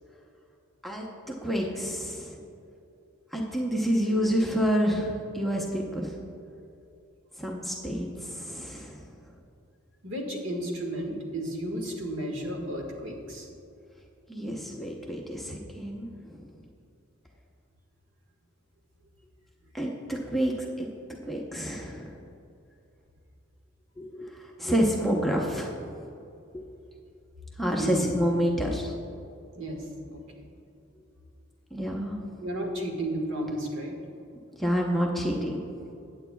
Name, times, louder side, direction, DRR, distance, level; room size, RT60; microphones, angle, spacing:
voice 1, 0.8-2.4 3.3-6.1 7.4-9.0 14.3-16.5 19.7-20.5 20.8-20.9 21.3-22.1 24.0-25.8 27.6-28.9 31.7-32.2 34.6-35.6, equal, ahead, -2 dB, 0.7 m, -28 dB
voice 2, 10.0-13.5 27.7-28.1 29.5-29.8 30.1-30.5 32.4-34.0, right 1 dB, 65° right, 1 dB, 1.6 m, -33 dB
15.5 x 9.1 x 2.3 m, 2.6 s
head